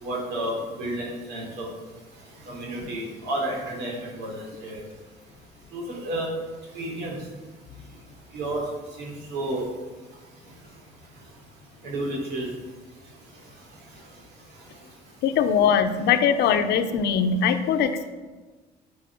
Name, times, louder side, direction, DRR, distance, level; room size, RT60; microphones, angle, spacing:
voice 1, 0.0-1.7 2.5-4.8 5.7-6.3 6.7-7.2 8.3-8.6 9.0-9.6 11.8-12.5, right 1 dB, 80° right, -3 dB, 3.6 m, -31 dB
voice 2, 15.2-18.1, left 7 dB, 75° left, 9 dB, 0.9 m, -21 dB
9.0 x 8.6 x 6.2 m, 1.3 s
cardioid pair, 110°, 17 cm